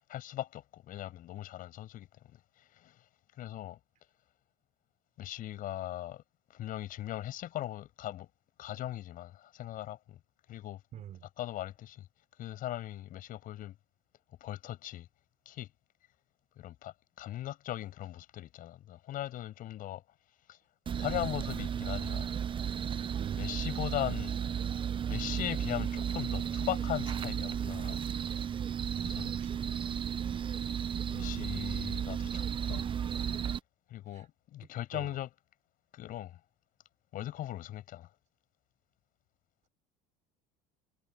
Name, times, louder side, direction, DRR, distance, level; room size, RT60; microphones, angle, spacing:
voice 1, 0.1-2.4 2.7-2.9 3.4-3.8 5.2-6.2 6.5-8.3 8.6-10.2 10.5-10.8 11.4-12.1 12.4-13.7 14.4-15.1 15.5-15.7 16.6-20.0 20.5-20.6 20.9-22.3 23.4-24.4 25.0-28.0 29.0-29.3 31.1-32.8 33.9-35.3 35.9-36.4 37.1-38.1, left 13 dB, 55° left, 7.4 m, -39 dB
voice 2, 10.9-11.2 23.2-23.5 29.4-29.5 34.1-34.2 34.9-35.1, right 10 dB, 45° right, 3.9 m, -45 dB
sound 1, 20.9-33.6, right 8 dB, 30° right, 1.0 m, -34 dB
supercardioid pair, 105°, 17 cm